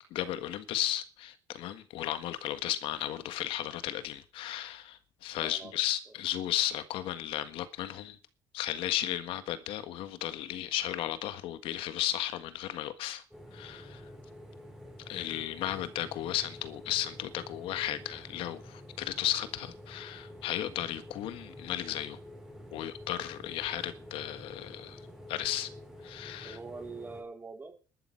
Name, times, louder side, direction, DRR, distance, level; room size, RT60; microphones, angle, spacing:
voice 1, 0.1-8.2 8.5-13.2 13.5-14.0 15.1-22.2 22.7-25.0 25.3-25.7 26.0-26.6, left 13 dB, 80° left, 1.5 m, -34 dB
voice 2, 5.3-5.8 6.1-6.2 26.4-27.7, right 4 dB, 20° right, 3.8 m, -44 dB
sound 1, 13.3-27.2, left 1 dB, ahead, 6.3 m, -49 dB
12.5 x 12.0 x 5.8 m
cardioid pair, 135°, 9 cm